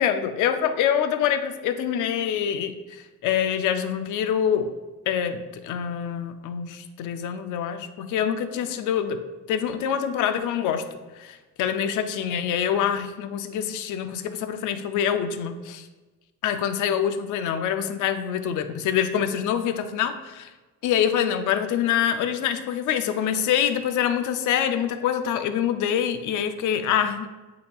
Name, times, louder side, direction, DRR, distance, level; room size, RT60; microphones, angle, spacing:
voice 1, 0.0-4.7 5.1-9.2 9.5-10.8 11.2-15.9 16.4-20.5 20.8-27.3, left 9 dB, 80° left, 9 dB, 0.5 m, -25 dB
8.0 x 2.8 x 2.3 m, 1.2 s
cardioid pair, 90°, 30 cm